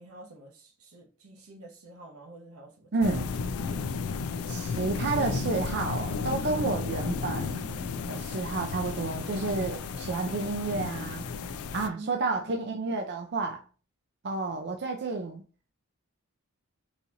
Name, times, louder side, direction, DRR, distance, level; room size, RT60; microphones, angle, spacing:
voice 1, 0.0-3.2 6.6-6.9 11.9-12.7, right 2 dB, 85° right, 1.0 m, -48 dB
voice 2, 2.9-3.3 4.5-11.3 11.7-13.6 14.2-15.4, right 3 dB, 50° right, 0.5 m, -31 dB
sound 1, 3.0-11.9, left 5 dB, 85° left, 0.4 m, -33 dB
4.0 x 2.9 x 2.5 m
head